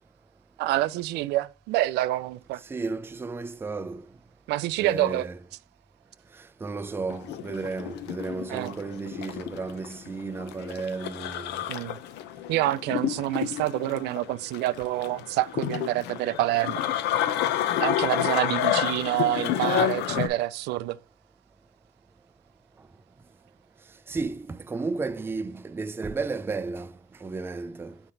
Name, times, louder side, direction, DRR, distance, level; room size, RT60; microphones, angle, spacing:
voice 1, 0.6-2.6 4.5-5.3 8.5-8.7 11.7-12.0 12.5-16.8 17.8-21.0, right 16 dB, 85° right, 0.4 m, -27 dB
voice 2, 2.6-4.1 4.8-5.4 6.4-11.6 24.1-26.9 27.2-28.0, right 4 dB, 15° right, 0.4 m, -33 dB
sound 1, 7.1-20.3, left 11 dB, 80° left, 0.6 m, -29 dB
5.8 x 4.4 x 3.9 m
cardioid pair, 110°, 17 cm